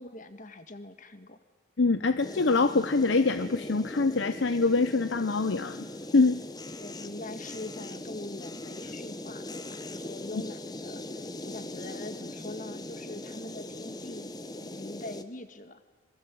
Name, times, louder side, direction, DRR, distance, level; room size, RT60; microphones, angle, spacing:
voice 1, 0.0-1.4 6.8-14.3 14.6-15.8, left 2 dB, 40° left, 10 dB, 1.8 m, -43 dB
voice 2, 1.8-5.8 6.1-6.4 10.3-10.4, left 3 dB, 60° left, 12 dB, 0.8 m, -24 dB
sound 1, 2.2-15.2, left 1 dB, 20° left, 1.1 m, -40 dB
26.0 x 21.5 x 8.5 m, 1.3 s
head